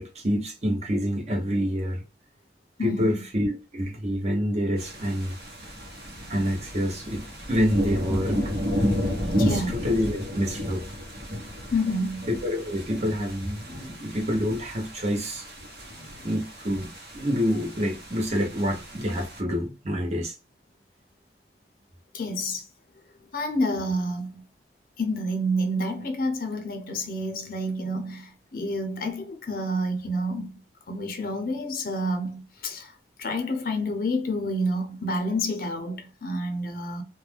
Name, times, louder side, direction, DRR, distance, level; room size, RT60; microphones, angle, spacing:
voice 1, 0.0-2.0 2.8-5.3 6.3-7.2 7.5-8.5 9.4-10.8 12.3-15.5 16.2-16.9 17.1-20.3, equal, 40° right, 0.7 m, -27 dB
voice 2, 2.8-3.2 9.4-9.9 11.7-12.3 13.7-14.1 15.9-16.2 22.1-22.7 23.3-24.4 25.0-30.6 30.9-37.0, equal, 55° left, 0.5 m, -29 dB
sound 1, 4.8-19.4, equal, 65° right, 0.9 m, -32 dB
2.4 x 2.1 x 3.2 m
head